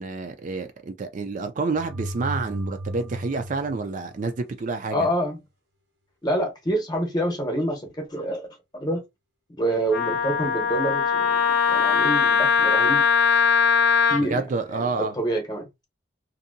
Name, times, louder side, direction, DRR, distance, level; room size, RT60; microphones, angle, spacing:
voice 1, 0.0-5.1 14.2-15.2, right 3 dB, 40° right, 0.4 m, -29 dB
sound 1, 1.7-4.6, right 1 dB, 85° right, 0.8 m, -35 dB
voice 2, 4.9-5.4 6.2-8.5 8.7-9.0 9.6-13.1 14.1-14.5 14.7-15.7, right 1 dB, 20° left, 0.9 m, -27 dB
Wind instrument woodwind instrument, 9.9-14.2, left 6 dB, 75° left, 0.6 m, -20 dB
2.7 x 2.6 x 2.6 m
head